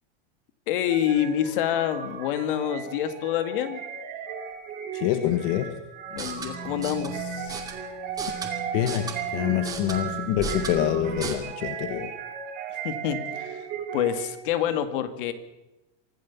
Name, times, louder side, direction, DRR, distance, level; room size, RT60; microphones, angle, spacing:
voice 1, 0.7-3.8 6.1-7.6 12.8-13.6 13.9-15.3, left 10 dB, 60° left, 10 dB, 2.1 m, -27 dB
sound 1, 0.9-14.5, right 7 dB, 30° right, 3.5 m, -36 dB
voice 2, 4.9-5.7 8.7-12.1, left 12 dB, 40° left, 9 dB, 1.2 m, -26 dB
sound 2, 6.1-11.3, right 3 dB, 10° right, 2.4 m, -36 dB
24.5 x 15.5 x 7.2 m, 0.98 s
supercardioid pair, 175°, 30 cm